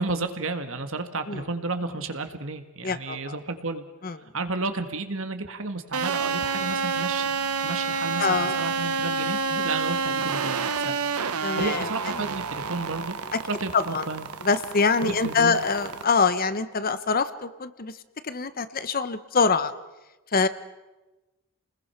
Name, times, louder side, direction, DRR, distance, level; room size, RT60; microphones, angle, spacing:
voice 1, 0.0-3.9 4.3-7.3 7.6-11.1 11.5-13.2 13.5-14.3 15.0-15.6, right 3 dB, 60° right, 8 dB, 1.8 m, -32 dB
voice 2, 2.8-3.3 4.0-4.2 8.2-8.6 9.5-9.7 11.4-11.9 12.2-12.3 13.3-13.4 13.7-14.1 14.4-17.9 18.2-19.7 20.3-20.5, left 4 dB, 40° left, 13 dB, 0.9 m, -24 dB
sound 1, 5.9-16.0, right 5 dB, 85° right, 1.1 m, -29 dB
30.0 x 20.5 x 5.8 m, 1.1 s
head